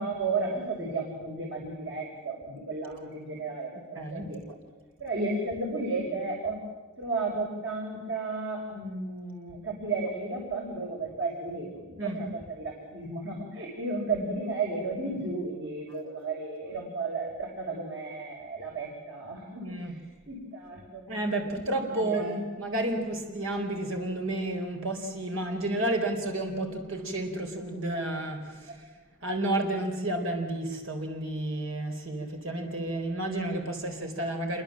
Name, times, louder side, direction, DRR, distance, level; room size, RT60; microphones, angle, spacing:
voice 1, 0.0-4.6 5.0-6.6 7.0-21.1 21.8-22.4, right 3 dB, 65° right, -1 dB, 6.3 m, -33 dB
voice 2, 3.9-4.3 12.0-12.2 19.6-19.9 21.1-28.8 29.2-34.6, right 1 dB, 85° right, 4 dB, 4.4 m, -31 dB
28.5 x 24.5 x 7.6 m, 1.3 s
head